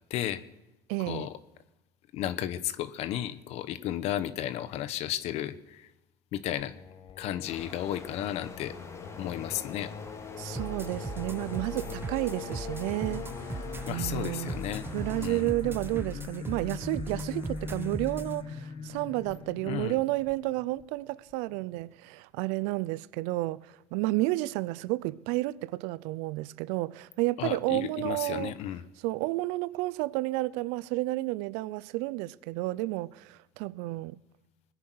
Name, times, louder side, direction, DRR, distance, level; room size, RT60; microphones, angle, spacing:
voice 1, 0.1-0.4 1.0-1.3 2.1-5.9 6.3-6.7 7.2-8.8 9.2-9.9 13.8-14.9 15.2-15.5 19.6-20.0 27.4-28.8, left 12 dB, 65° left, 1.0 m, -33 dB
voice 2, 0.9-1.3 10.3-13.6 13.9-14.5 14.9-28.5 29.0-34.2, right 20 dB, 80° right, 0.5 m, -31 dB
Singing, 6.6-21.3, left 6 dB, 45° left, 1.6 m, -41 dB
sound 1, 7.5-15.4, left 2 dB, 25° left, 2.5 m, -48 dB
sound 2, 10.5-18.3, right 3 dB, 20° right, 1.1 m, -39 dB
21.0 x 9.7 x 6.3 m
supercardioid pair, 100°, 12 cm